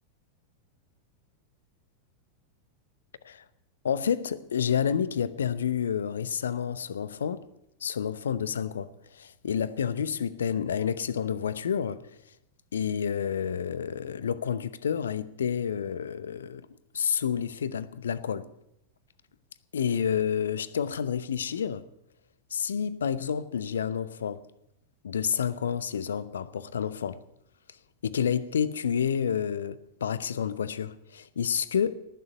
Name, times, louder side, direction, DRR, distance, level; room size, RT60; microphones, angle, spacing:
voice 1, 3.8-7.5 7.8-12.0 12.7-16.7 16.9-18.5 19.7-21.9 22.5-24.4 25.0-27.2 28.0-31.9, left 8 dB, 65° left, 0.8 m, -29 dB
19.0 x 6.9 x 9.3 m
figure-of-eight pair, 90°, 0 cm